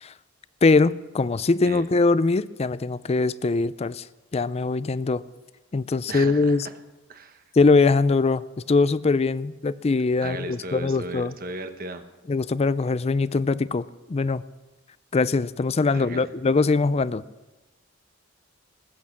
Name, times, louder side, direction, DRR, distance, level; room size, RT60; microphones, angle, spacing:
voice 1, 0.6-4.0 4.3-5.2 5.7-6.7 7.6-11.3 12.3-14.4 15.1-17.2, left 3 dB, 30° left, 17 dB, 0.4 m, -22 dB
voice 2, 6.1-6.7 7.1-7.4 10.2-12.0 15.9-16.3, right 2 dB, 45° right, 8 dB, 1.1 m, -36 dB
19.5 x 8.6 x 7.4 m, 1.1 s
head